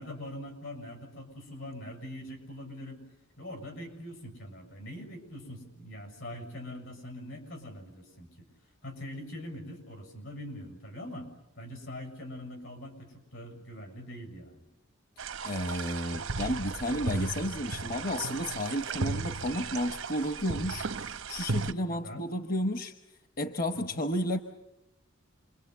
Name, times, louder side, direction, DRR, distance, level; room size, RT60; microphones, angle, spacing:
voice 1, 0.0-3.0 3.4-8.3 8.8-11.3 11.6-14.6 21.9-22.3 23.7-24.0, left 1 dB, 85° left, 6 dB, 7.3 m, -43 dB
sound 1, 15.2-21.7, right 4 dB, 85° right, 0.9 m, -35 dB
voice 2, 15.4-20.9 21.3-22.9 23.4-24.4, equal, 45° left, 7 dB, 1.0 m, -32 dB
28.5 x 23.0 x 8.2 m, 0.91 s
head